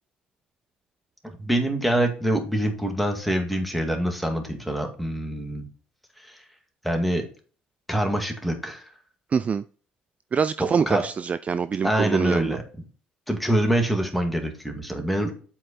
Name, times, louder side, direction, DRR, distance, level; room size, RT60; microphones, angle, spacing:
voice 1, 1.2-5.7 6.2-6.4 6.8-7.3 7.9-8.8 10.6-11.1 11.8-12.6 13.3-15.3, right 1 dB, ahead, 2.1 m, -25 dB
voice 2, 9.3-9.6 10.3-12.6, right 6 dB, 35° right, 0.3 m, -24 dB
7.6 x 4.7 x 4.2 m
supercardioid pair, 70°, 4 cm